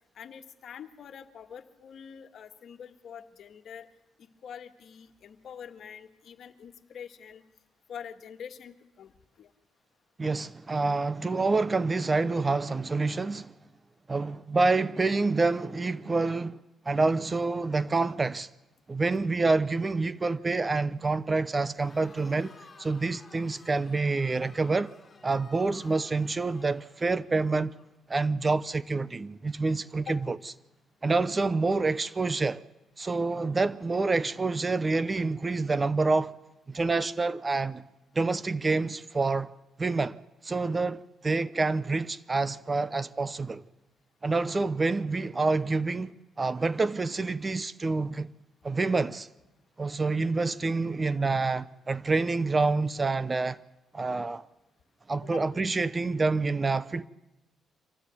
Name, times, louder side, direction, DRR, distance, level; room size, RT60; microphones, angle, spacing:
voice 1, 0.2-3.9 4.2-7.4 7.9-9.1 9.4-9.5 30.0-30.2 55.2-55.4, left 8 dB, 60° left, 1.7 m, -45 dB
voice 2, 10.2-13.5 14.1-16.6 16.9-18.5 18.9-22.5 22.8-24.9 25.2-27.7 28.1-30.4 31.0-32.6 33.0-36.3 36.7-37.8 38.1-39.5 39.8-40.2 40.4-43.6 44.2-48.3 48.6-49.3 49.8-53.6 53.9-54.4 55.1-57.0, right 3 dB, 25° right, 0.7 m, -27 dB
Crowd, 21.7-27.9, left 4 dB, 25° left, 4.7 m, -54 dB
25.0 x 16.0 x 9.7 m
cardioid pair, 90°, 0 cm